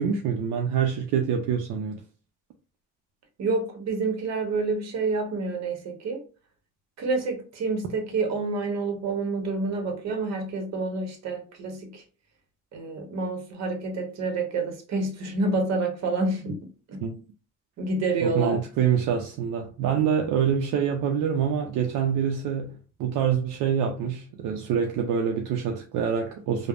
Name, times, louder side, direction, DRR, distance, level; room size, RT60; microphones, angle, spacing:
voice 1, 0.0-2.0 17.0-17.1 18.2-26.7, right 7 dB, 80° right, 0.5 m, -26 dB
voice 2, 3.4-6.2 7.0-12.0 12.7-16.6 16.9-17.0 17.8-18.6, right 3 dB, 60° right, 0.9 m, -28 dB
3.2 x 2.0 x 2.3 m
cardioid pair, 110°, 30 cm